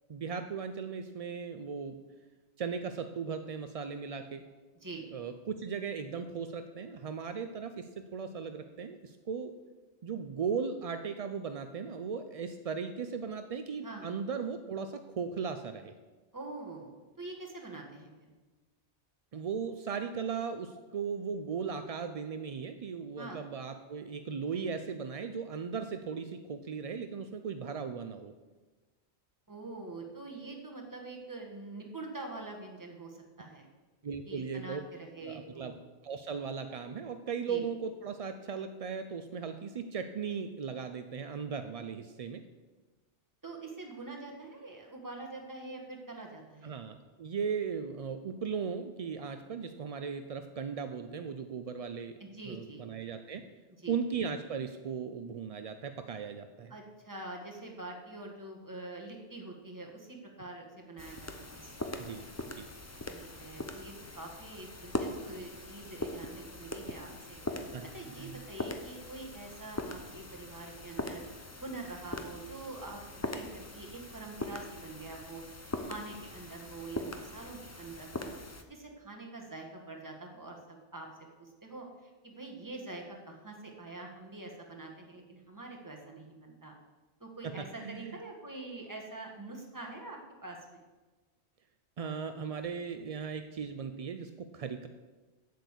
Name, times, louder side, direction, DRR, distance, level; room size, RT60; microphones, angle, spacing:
voice 1, 0.1-2.0 2.6-4.4 5.1-9.5 10.0-15.9 19.3-28.3 34.0-34.8 35.2-35.8 36.0-42.4 46.6-52.1 52.5-53.5 53.9-56.7 62.0-62.7 67.7-68.4 87.4-88.1 92.0-94.9, right 6 dB, 55° right, 8 dB, 0.4 m, -37 dB
voice 2, 16.3-18.3 23.2-23.4 29.5-33.7 34.2-35.8 37.5-37.7 43.4-46.7 52.2-52.9 53.8-54.0 56.7-61.9 63.1-67.4 67.8-71.2 71.6-75.4 75.8-78.3 78.7-81.1 81.4-86.7 87.2-90.8, right 2 dB, 15° right, 0 dB, 1.5 m, -45 dB
sound 1, 61.0-78.6, left 2 dB, 20° left, 0.6 m, -41 dB
7.9 x 6.6 x 8.2 m, 1.3 s
omnidirectional pair, 1.2 m